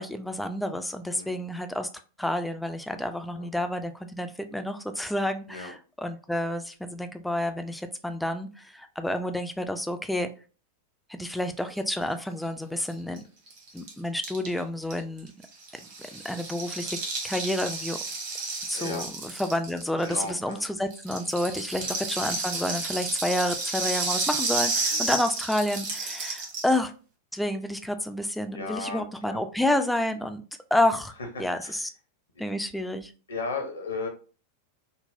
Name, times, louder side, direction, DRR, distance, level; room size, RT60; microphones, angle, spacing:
voice 1, 0.0-1.9 2.2-10.3 11.1-13.2 13.7-15.3 16.1-17.0 17.2-18.0 18.7-26.9 27.3-30.4 30.7-31.1 31.4-31.9 32.4-33.1, left 1 dB, 5° left, 8 dB, 0.3 m, -29 dB
voice 2, 1.1-1.5 3.3-3.5 5.5-5.7 18.7-19.0 20.0-20.6 21.7-22.1 24.9-25.2 28.5-29.4 31.2-31.8 33.3-34.1, left 3 dB, 70° left, 3 dB, 0.8 m, -36 dB
Rattle (instrument), 12.9-13.0 13.2-13.3 13.5-20.6 20.9-26.8, right 3 dB, 50° right, 1.1 m, -31 dB
3.9 x 2.0 x 2.6 m, 0.37 s
figure-of-eight pair, 90°, 0 cm